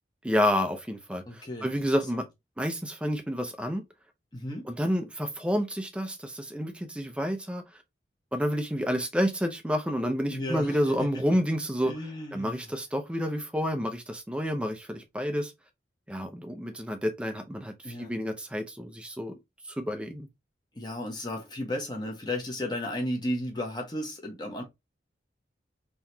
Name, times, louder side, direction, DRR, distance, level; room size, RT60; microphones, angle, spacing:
voice 1, 0.2-2.3 2.6-3.8 4.6-7.6 8.3-11.9 12.3-15.5 16.1-19.3 19.7-20.3, equal, 5° right, 0.6 m, -29 dB
voice 2, 1.3-1.7 4.3-4.7 10.3-10.8 11.8-12.6 17.8-18.2 20.7-24.6, left 1 dB, 25° left, 1.2 m, -34 dB
3.9 x 3.0 x 2.7 m
head